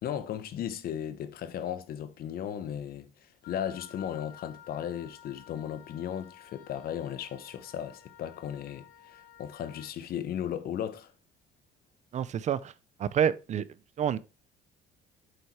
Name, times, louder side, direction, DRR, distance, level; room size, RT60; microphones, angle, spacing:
voice 1, 0.0-11.1, left 9 dB, 60° left, 1.0 m, -36 dB
Wind instrument woodwind instrument, 3.4-10.0, left 10 dB, 80° left, 1.5 m, -53 dB
voice 2, 12.1-12.7 13.0-13.7 14.0-14.2, right 8 dB, 45° right, 0.5 m, -28 dB
8.1 x 4.3 x 4.6 m
cardioid pair, 110°, 17 cm